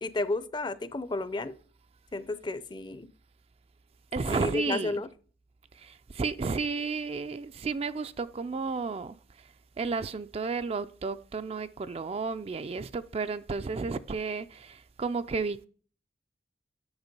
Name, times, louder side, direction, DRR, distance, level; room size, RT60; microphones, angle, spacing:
voice 1, 0.0-1.6 2.1-3.1 4.3-5.1, left 2 dB, 25° left, 0.5 m, -32 dB
voice 2, 4.1-5.0 5.8-9.2 9.8-15.7, right 4 dB, 35° right, 0.3 m, -32 dB
8.0 x 6.2 x 5.3 m
head